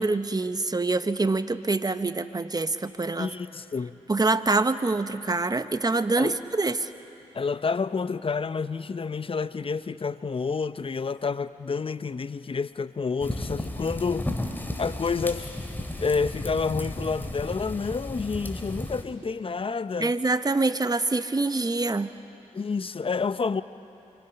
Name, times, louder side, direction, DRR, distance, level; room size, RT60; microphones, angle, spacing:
voice 1, 0.0-3.3 4.1-6.9 20.0-22.1, right 3 dB, 30° right, 1.1 m, -25 dB
voice 2, 3.2-4.0 6.2-6.3 7.3-14.3 14.8-15.5 16.0-20.1 22.5-23.6, left 5 dB, 40° left, 0.8 m, -29 dB
sound 1, 13.2-19.0, left 1 dB, 15° left, 2.9 m, -34 dB
27.0 x 24.5 x 5.9 m
supercardioid pair, 45°, 14 cm